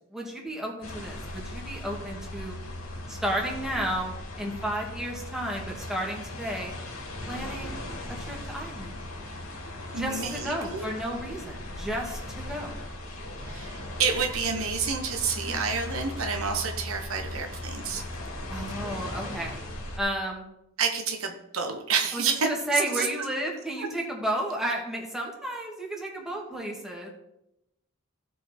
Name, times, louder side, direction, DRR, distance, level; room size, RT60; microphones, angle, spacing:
voice 1, 0.1-2.6 3.1-6.7 7.3-7.8 8.1-8.9 10.0-12.8 15.4-15.6 18.5-19.6 20.0-20.5 22.1-27.1, right 1 dB, ahead, -2 dB, 2.1 m, -32 dB
sound 1, 0.8-20.0, left 1 dB, 75° left, 2.7 m, -38 dB
voice 2, 9.9-10.8 13.5-18.0 20.8-22.5 23.0-23.1 23.8-23.9, right 5 dB, 75° right, 5 dB, 1.2 m, -29 dB
15.5 x 5.5 x 4.5 m, 0.87 s
head